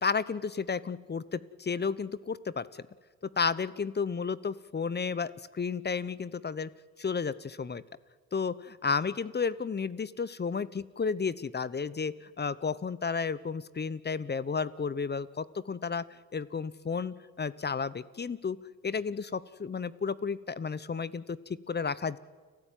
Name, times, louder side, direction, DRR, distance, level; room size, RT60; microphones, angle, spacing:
voice 1, 0.0-2.7 3.4-6.7 7.0-7.8 8.3-16.0 16.3-18.6 18.8-21.4 21.7-22.2, left 5 dB, 25° left, 18 dB, 0.9 m, -32 dB
30.0 x 12.5 x 9.2 m, 1.5 s
hypercardioid pair, 60°, 37 cm